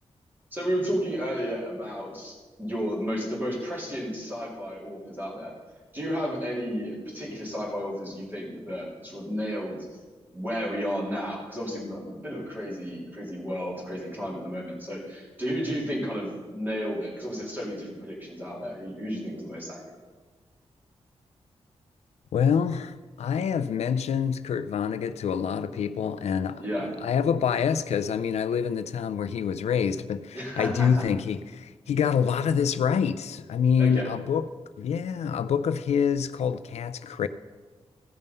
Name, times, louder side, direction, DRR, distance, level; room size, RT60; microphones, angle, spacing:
voice 1, 0.5-5.5 5.9-10.0 10.3-19.8 26.6-26.9 30.3-31.0 33.8-34.1, equal, 20° right, 2.9 m, -32 dB
voice 2, 22.3-26.6 27.0-34.5 34.8-37.3, left 7 dB, 85° left, 0.4 m, -26 dB
15.5 x 5.5 x 5.4 m
wide cardioid pair, 175°, 11 cm